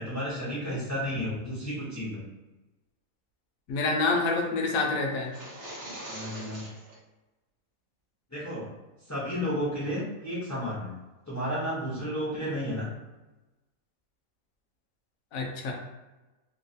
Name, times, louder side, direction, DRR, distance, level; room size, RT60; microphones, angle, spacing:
voice 1, 0.0-2.2 6.1-6.6 8.3-8.7 9.1-10.9 11.3-12.8, equal, 25° left, -8 dB, 0.3 m, -32 dB
voice 2, 3.7-5.3 15.3-15.7, left 3 dB, 70° left, 1 dB, 1.0 m, -27 dB
sound 1, 5.2-7.0, right 1 dB, 55° right, 1.3 m, -42 dB
3.0 x 2.3 x 2.6 m, 1.1 s
omnidirectional pair, 1.6 m